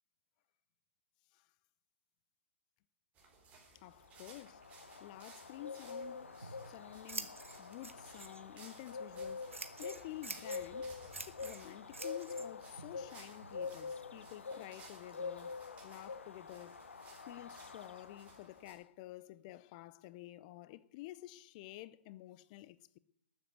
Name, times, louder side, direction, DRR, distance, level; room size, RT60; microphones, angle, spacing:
sound 1, 3.1-18.7, right 3 dB, 20° right, 4.3 m, -61 dB
voice 1, 3.7-4.6 5.0-11.0 11.3-16.8 17.3-23.0, left 16 dB, 35° left, 0.5 m, -51 dB
Bird, 4.0-18.7, left 5 dB, 75° left, 1.0 m, -46 dB
Scissors, 6.2-14.3, right 3 dB, 85° right, 1.5 m, -50 dB
13.0 x 8.0 x 7.9 m
figure-of-eight pair, 120°, 7 cm